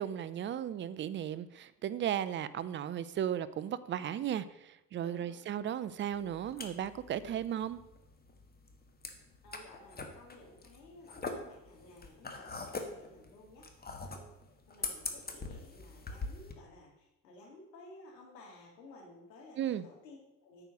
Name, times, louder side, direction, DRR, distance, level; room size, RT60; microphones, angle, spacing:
voice 1, 0.0-7.8 19.6-19.8, right 10 dB, 25° right, 16 dB, 0.4 m, -35 dB
voice 2, 5.0-5.7 7.2-7.4 9.4-13.6 14.0-14.3 14.7-20.6, left 2 dB, 80° left, 0 dB, 2.3 m, -55 dB
sound 1, 6.1-16.5, left 3 dB, 20° left, 1.4 m, -43 dB
9.0 x 4.9 x 6.2 m, 0.91 s
figure-of-eight pair, 60°, 49 cm